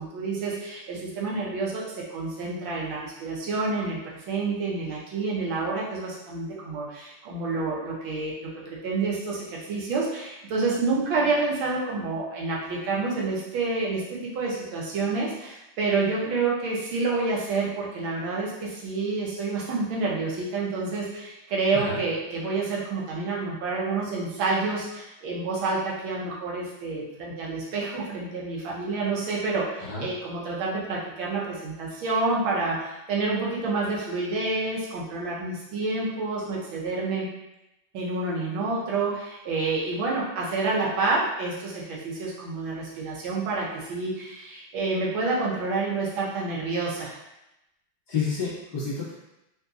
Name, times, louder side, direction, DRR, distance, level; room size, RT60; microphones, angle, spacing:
voice 1, 0.0-37.3 37.9-47.1, right 3 dB, 80° right, -4 dB, 1.6 m, -28 dB
voice 2, 48.1-49.1, left 5 dB, 30° left, -11 dB, 1.6 m, -29 dB
3.8 x 2.7 x 2.3 m, 0.92 s
omnidirectional pair, 2.2 m